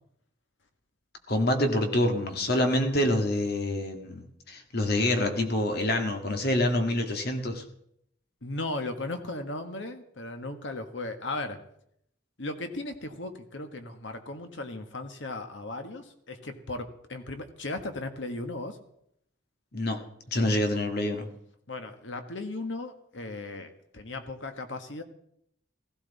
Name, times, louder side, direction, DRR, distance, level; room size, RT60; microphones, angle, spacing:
voice 1, 1.3-7.6 19.7-20.0 20.3-21.3, left 1 dB, 55° left, 5 dB, 1.8 m, -26 dB
voice 2, 8.4-11.6 12.4-18.8 21.7-25.0, left 2 dB, 75° left, 7 dB, 1.6 m, -36 dB
16.0 x 15.5 x 4.1 m, 0.72 s
head